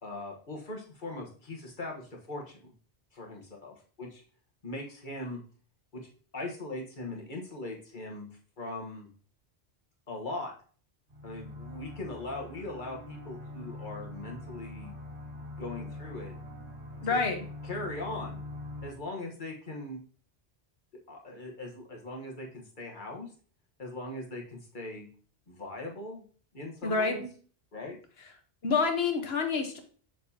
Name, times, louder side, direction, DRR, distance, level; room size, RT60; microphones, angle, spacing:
voice 1, 0.0-2.7 3.1-4.2 4.6-5.4 5.9-6.0 6.3-8.3 8.6-9.1 10.1-10.5 11.2-14.9 15.6-16.3 17.1-17.2 17.6-18.4 18.8-20.0 21.1-23.3 23.8-25.1 25.5-26.3 26.5-27.2 27.7-28.0, left 2 dB, 45° left, 0 dB, 1.5 m, -40 dB
sound 1, 11.1-18.9, left 2 dB, 85° right, 2.3 m, -43 dB
voice 2, 17.0-17.4 26.8-27.2 28.6-29.8, left 4 dB, 65° left, 5 dB, 1.3 m, -27 dB
6.9 x 6.2 x 2.8 m, 0.43 s
omnidirectional pair, 1.1 m